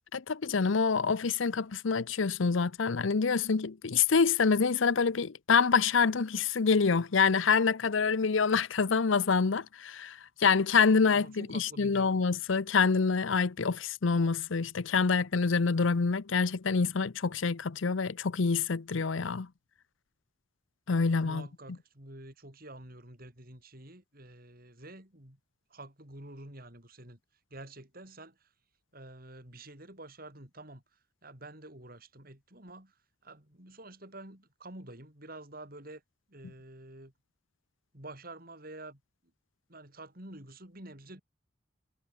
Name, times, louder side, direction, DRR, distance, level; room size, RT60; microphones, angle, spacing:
voice 1, 0.1-19.5 20.9-21.5, left 5 dB, 75° left, 0.7 m, -26 dB
voice 2, 11.1-12.2 21.2-25.4 25.7-27.2 27.5-28.5 28.9-30.8 31.2-33.0 33.2-36.0 36.3-37.1 37.9-39.0 39.7-41.2, right 1 dB, 45° right, 6.1 m, -48 dB
head